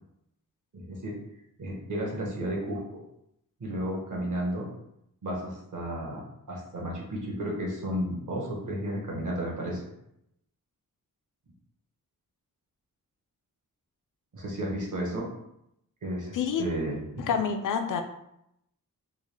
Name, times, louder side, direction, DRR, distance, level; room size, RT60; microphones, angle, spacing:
voice 1, 0.7-1.2 1.6-3.0 3.6-4.7 5.2-6.2 6.5-9.8 14.3-15.3 16.0-17.3, equal, 60° right, -3 dB, 1.2 m, -33 dB
voice 2, 16.3-16.6 17.2-18.0, left 7 dB, 65° left, 6 dB, 0.4 m, -27 dB
3.6 x 2.4 x 3.2 m, 0.79 s
wide cardioid pair, 155°, 35 cm